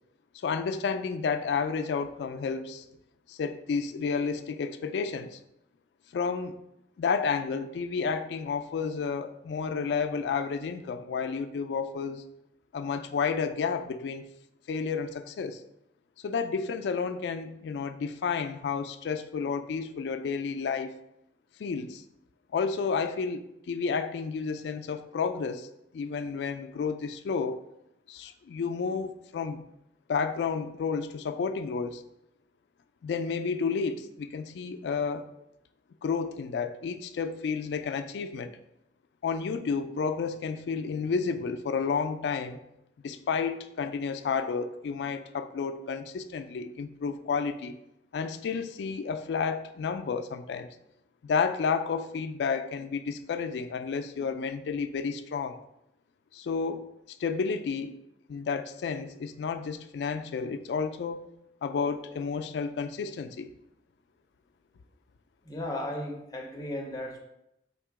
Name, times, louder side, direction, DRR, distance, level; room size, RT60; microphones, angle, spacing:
voice 1, 0.4-2.9 3.3-5.4 6.1-6.6 7.0-12.2 12.7-14.3 14.7-15.6 16.2-20.9 21.6-22.0 22.5-25.7 25.9-27.6 28.1-29.6 30.1-32.0 33.0-35.3 36.0-38.5 39.2-42.6 43.0-47.8 48.1-50.7 51.2-55.6 56.3-57.9 58.3-61.4 61.6-63.5, left 5 dB, 80° left, 9 dB, 0.3 m, -31 dB
voice 2, 65.4-67.2, left 1 dB, 20° left, 1 dB, 0.6 m, -35 dB
3.6 x 2.9 x 4.6 m, 0.82 s
head